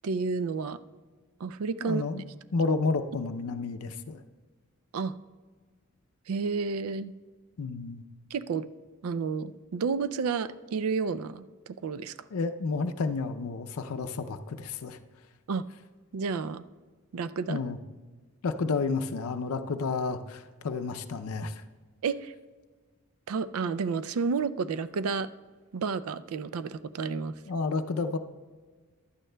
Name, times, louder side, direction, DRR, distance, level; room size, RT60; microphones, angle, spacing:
voice 1, 0.0-0.8 1.4-2.2 4.9-5.1 6.3-7.1 8.3-8.7 9.0-12.1 15.5-15.6 16.1-16.7 17.1-17.6 22.0-22.3 23.3-25.3 25.7-27.3, right 5 dB, 80° right, 14 dB, 0.4 m, -31 dB
voice 2, 1.8-4.2 7.6-8.0 12.3-15.0 17.5-17.8 18.4-21.5 27.5-28.2, left 4 dB, 85° left, 8 dB, 0.5 m, -31 dB
15.5 x 11.0 x 2.2 m, 1.4 s
head